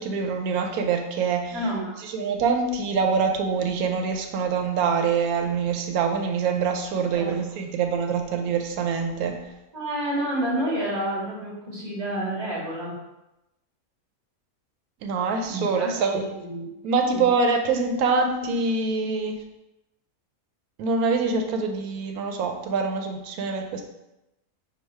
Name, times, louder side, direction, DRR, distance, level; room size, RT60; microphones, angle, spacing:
voice 1, 0.0-1.6 2.0-9.4 15.0-16.3 16.8-19.4 20.8-23.8, right 5 dB, 90° right, 4 dB, 1.1 m, -25 dB
voice 2, 1.5-1.9 7.1-7.4 9.7-12.9 15.5-16.7 17.1-17.3, right 1 dB, 30° right, -6 dB, 1.4 m, -29 dB
4.8 x 2.3 x 4.5 m, 0.93 s
omnidirectional pair, 1.5 m